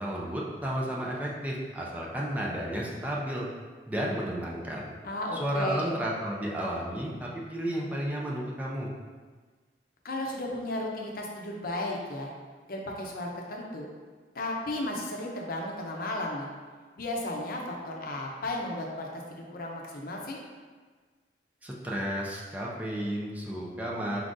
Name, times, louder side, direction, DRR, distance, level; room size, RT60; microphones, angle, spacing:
voice 1, 0.0-3.5 3.9-4.9 5.4-8.9 21.6-24.2, equal, 10° right, -4 dB, 0.5 m, -32 dB
voice 2, 5.0-5.9 10.0-12.3 12.7-13.9 14.3-16.5 17.0-20.4, left 1 dB, 55° left, -1 dB, 0.6 m, -34 dB
4.6 x 3.7 x 2.5 m, 1.5 s
head